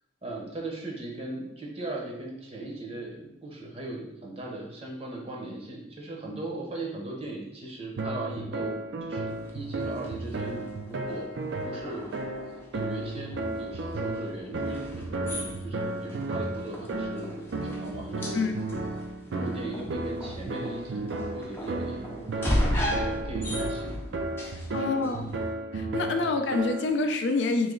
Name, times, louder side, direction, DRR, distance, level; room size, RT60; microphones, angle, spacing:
voice 1, 0.2-11.3 11.6-12.1 12.7-18.5 19.3-24.0 24.7-25.2, right 2 dB, 30° right, -1 dB, 0.7 m, -38 dB
sound 1, 8.0-27.0, right 2 dB, 70° right, 0.4 m, -34 dB
sound 2, 9.3-25.5, left 1 dB, 10° left, 0.5 m, -36 dB
voice 2, 24.5-25.3 25.7-27.7, left 3 dB, 70° left, 5 dB, 0.4 m, -27 dB
3.1 x 2.9 x 3.7 m, 0.85 s
head